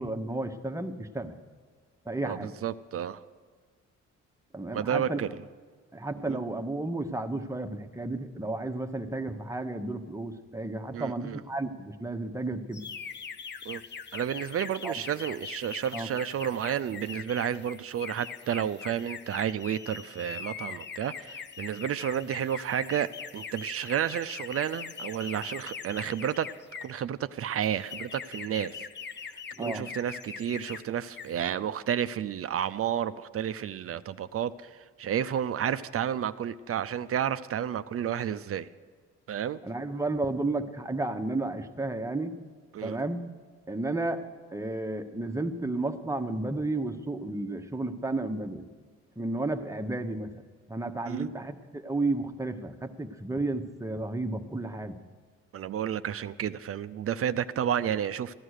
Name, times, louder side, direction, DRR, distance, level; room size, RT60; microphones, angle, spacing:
voice 1, 0.0-1.3 2.0-2.5 4.5-5.2 5.9-12.8 14.8-15.0 15.9-16.1 29.6-29.8 39.6-42.4 42.8-43.2 43.7-44.3 44.5-48.6 49.2-50.3 50.7-55.0, right 2 dB, 10° right, 6 dB, 1.0 m, -32 dB
voice 2, 2.2-3.2 4.7-5.3 6.2-6.4 10.9-11.4 13.6-13.8 14.1-26.5 26.8-28.8 29.6-38.7 39.3-39.6 42.7-43.0 51.1-51.3 55.5-58.4, right 9 dB, 50° right, 12 dB, 0.5 m, -31 dB
sound 1, 12.7-27.0 27.6-30.8 31.1-31.4, left 6 dB, 35° left, 0.6 m, -42 dB
15.0 x 11.0 x 6.5 m, 1.5 s
cardioid pair, 90°, 30 cm